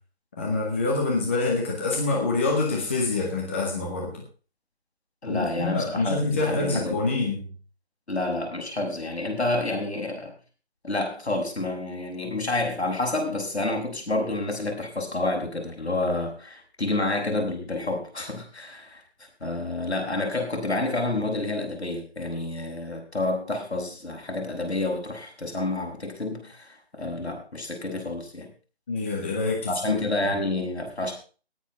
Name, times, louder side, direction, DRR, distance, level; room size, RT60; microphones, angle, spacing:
voice 1, 0.4-4.1 5.2-7.5 28.9-30.3, left 3 dB, 10° left, -1 dB, 1.7 m, -26 dB
voice 2, 5.2-7.1 8.1-10.3 10.8-19.0 19.4-28.5 29.7-31.1, left 2 dB, 80° left, 2 dB, 7.0 m, -29 dB
18.5 x 7.9 x 5.7 m, 0.37 s
figure-of-eight pair, 170°, 33 cm